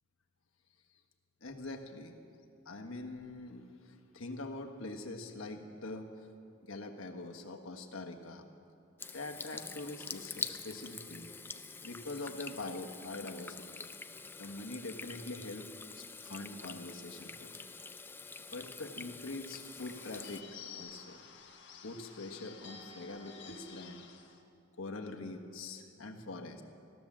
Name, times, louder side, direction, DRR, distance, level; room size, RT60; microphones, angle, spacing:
voice 1, 1.4-2.2 2.6-6.1 6.6-8.4 9.1-11.3 11.8-13.8 14.2-15.7 15.9-17.7 18.5-20.5 20.8-21.2 21.8-24.0 24.8-26.6, left 2 dB, 80° left, 4 dB, 1.4 m, -44 dB
Water tap faucet / Sink (filling or washing), 9.0-20.4, left 4 dB, 10° left, 0.3 m, -46 dB
Bird / Bell, 19.4-24.4, left 6 dB, 60° left, 1.5 m, -52 dB
16.0 x 12.0 x 7.3 m, 2.5 s
head